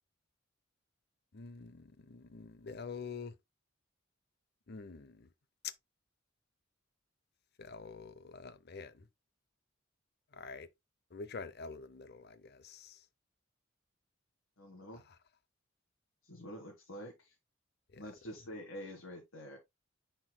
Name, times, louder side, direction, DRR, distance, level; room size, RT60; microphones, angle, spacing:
voice 1, 1.3-3.3 4.7-5.3 5.6-5.7 7.6-9.1 10.3-10.7 11.1-13.0 15.1-15.2 17.9-18.0, left 5 dB, 55° left, 0.7 m, -46 dB
voice 2, 14.6-15.0 16.2-17.3 18.0-19.6, equal, 85° left, 1.7 m, -47 dB
9.8 x 4.4 x 2.2 m
head